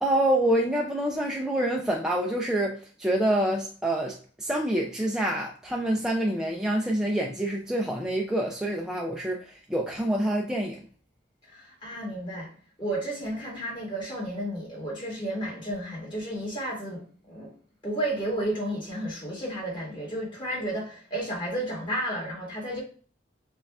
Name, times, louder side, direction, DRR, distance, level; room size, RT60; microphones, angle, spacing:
voice 1, 0.0-10.8, right 1 dB, 5° right, 0.3 m, -27 dB
voice 2, 11.5-12.5 12.8-17.0 17.3-17.5 17.8-22.8, right 1 dB, 25° left, 1.7 m, -32 dB
6.3 x 2.3 x 2.3 m
head